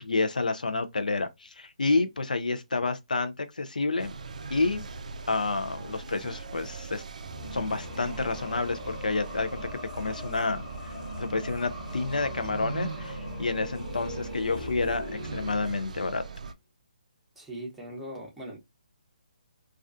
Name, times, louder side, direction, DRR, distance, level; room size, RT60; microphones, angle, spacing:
voice 1, 0.0-4.1 4.5-4.9 5.3-7.0 7.5-9.7 9.9-16.2, left 3 dB, 85° left, 0.4 m, -29 dB
sound 1, 4.0-16.5, right 4 dB, 65° right, 0.3 m, -41 dB
sound 2, 7.2-16.3, left 1 dB, 25° left, 0.9 m, -40 dB
voice 2, 17.4-18.6, right 1 dB, 5° right, 0.7 m, -40 dB
2.3 x 2.1 x 2.4 m
figure-of-eight pair, 145°, 4 cm